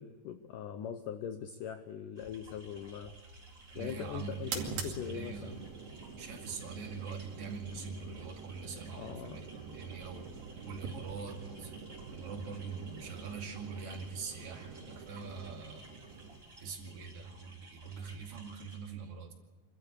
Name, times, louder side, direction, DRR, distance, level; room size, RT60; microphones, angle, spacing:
voice 1, 0.0-3.1 3.8-5.6 9.0-9.4, left 9 dB, 85° left, 9 dB, 1.8 m, -41 dB
sound 1, 2.2-18.8, right 2 dB, 20° right, 5.9 m, -55 dB
sound 2, 2.7-18.0, right 5 dB, 60° right, 4.1 m, -47 dB
voice 2, 3.7-5.6 6.2-11.7 12.1-15.8 16.6-19.3, right 5 dB, 40° right, 2 dB, 2.8 m, -43 dB
25.5 x 13.5 x 8.3 m, 1.4 s
omnidirectional pair, 5.0 m